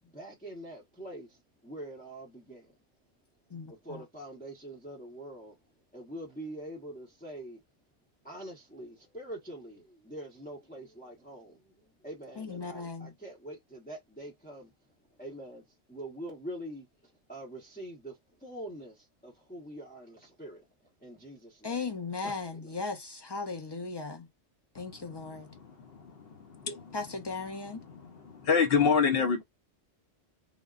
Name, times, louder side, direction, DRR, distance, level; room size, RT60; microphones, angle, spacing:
voice 1, 0.0-2.7 3.7-5.6 5.9-7.6 8.2-14.7 15.2-20.6 21.0-21.8 22.2-22.7, right 1 dB, 10° left, 0.7 m, -44 dB
voice 2, 3.5-4.0 12.4-13.1 21.6-24.3 24.7-25.5 26.9-27.8, left 4 dB, 35° left, 0.4 m, -37 dB
voice 3, 25.5-26.9 27.9-29.4, left 6 dB, 60° left, 0.9 m, -28 dB
3.7 x 2.1 x 2.4 m
omnidirectional pair, 1.2 m